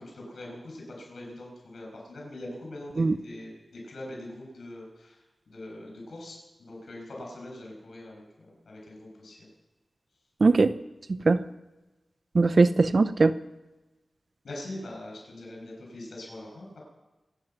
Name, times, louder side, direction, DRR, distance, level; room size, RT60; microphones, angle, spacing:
voice 1, 0.0-9.5 14.4-16.8, left 1 dB, 85° left, 0 dB, 6.9 m, -42 dB
voice 2, 10.4-10.7 11.2-11.4 12.3-13.3, right 3 dB, 60° right, 13 dB, 0.7 m, -20 dB
25.5 x 9.2 x 5.9 m, 1.1 s
cardioid pair, 55°, 0 cm